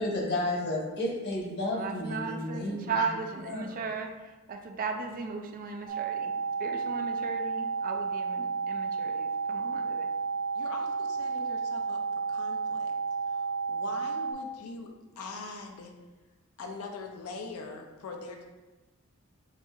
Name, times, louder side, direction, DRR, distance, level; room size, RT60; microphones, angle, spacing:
voice 1, 0.0-3.0 3.5-3.7, left 1 dB, 50° left, -3 dB, 1.1 m, -32 dB
voice 2, 1.7-6.3 6.6-10.1, right 4 dB, 40° right, 5 dB, 0.4 m, -36 dB
sound 1, 5.9-14.3, right 5 dB, 20° right, 0.9 m, -32 dB
voice 3, 10.6-12.0 12.3-12.9 13.3-15.9 16.6-18.4, left 3 dB, 80° left, 3 dB, 0.5 m, -42 dB
7.1 x 2.7 x 2.4 m, 1.2 s
head